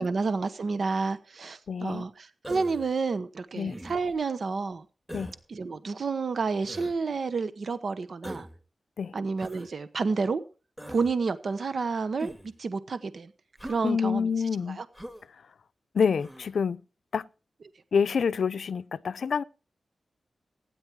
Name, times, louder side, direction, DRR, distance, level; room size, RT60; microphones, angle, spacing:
voice 1, 0.0-4.8 5.5-8.5 9.1-10.4 10.9-12.3 12.6-13.3 13.6-14.3 14.8-14.9, right 4 dB, 60° right, 1.0 m, -30 dB
voice 2, 1.7-2.0 3.5-3.8 5.1-5.3 9.0-9.1 13.8-14.8 15.9-16.8 17.1-17.3 17.9-19.4, left 6 dB, 80° left, 0.6 m, -27 dB
Human voice, 2.4-2.9 3.7-4.2 5.1-5.4 6.6-7.0 8.2-8.6 9.4-9.7 10.8-11.1 12.2-12.5 13.6-13.8 14.9-15.2 16.2-16.5, equal, 5° right, 1.8 m, -42 dB
16.5 x 9.8 x 4.7 m
wide cardioid pair, 115°, 0 cm